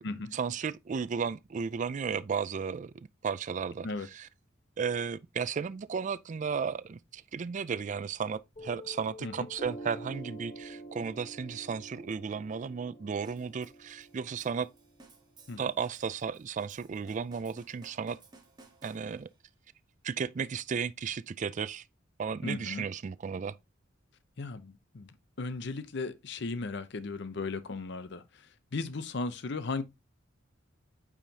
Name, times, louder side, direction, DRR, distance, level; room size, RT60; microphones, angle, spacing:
voice 1, 0.3-3.9 4.1-4.3 4.8-14.7 15.6-18.2 18.8-19.3 20.0-21.8 22.2-23.5, right 6 dB, 40° right, 0.4 m, -34 dB
Piano, 8.6-15.6, right 1 dB, 35° left, 0.9 m, -47 dB
sound 1, 13.2-19.4, right 3 dB, 25° right, 1.4 m, -58 dB
voice 2, 22.4-22.9 24.4-25.1 25.4-29.8, left 3 dB, 65° left, 0.7 m, -36 dB
9.0 x 4.9 x 2.8 m
head